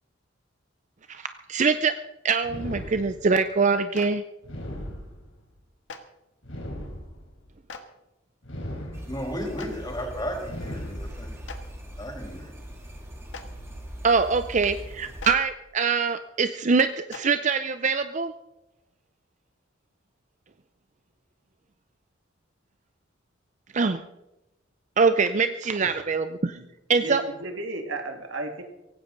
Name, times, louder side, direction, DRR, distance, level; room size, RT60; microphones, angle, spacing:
voice 1, 1.5-1.9 2.2-4.2 14.0-18.3 23.7-24.0 25.0-26.6 26.9-27.2, right 5 dB, 40° right, 10 dB, 0.5 m, -23 dB
sound 1, 2.4-3.5 4.4-5.5 6.4-7.5 8.4-9.5 10.4-11.5, equal, 90° left, 4.1 m, -38 dB
Clapping, 3.9-4.1 5.9-6.0 7.7-7.8 9.6-9.7 11.5-11.6 13.3-13.4 15.2-15.3 17.1-17.2, left 5 dB, 70° left, 1.6 m, -38 dB
sound 2, 8.9-15.3, equal, 15° right, 2.6 m, -40 dB
voice 2, 9.1-11.3 12.0-12.6, equal, 20° left, 0 dB, 5.1 m, -34 dB
voice 3, 27.0-28.6, right 2 dB, 85° right, 4 dB, 2.2 m, -34 dB
17.5 x 16.0 x 3.9 m, 0.96 s
head